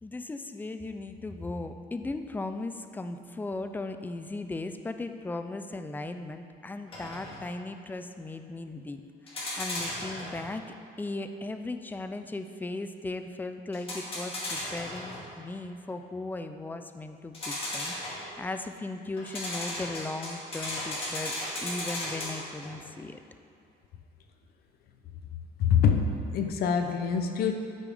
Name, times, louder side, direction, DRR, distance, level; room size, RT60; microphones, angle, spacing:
voice 1, 0.0-21.3 21.6-23.2, left 2 dB, 10° left, 8 dB, 0.4 m, -37 dB
sound 1, 6.9-7.5 9.3-10.5 13.7-15.3 17.3-18.4 19.2-22.8, left 1 dB, 35° left, 2.1 m, -36 dB
voice 2, 25.6-27.5, left 7 dB, 65° left, 5 dB, 0.7 m, -25 dB
12.0 x 5.0 x 3.5 m, 2.4 s
cardioid pair, 110°, 17 cm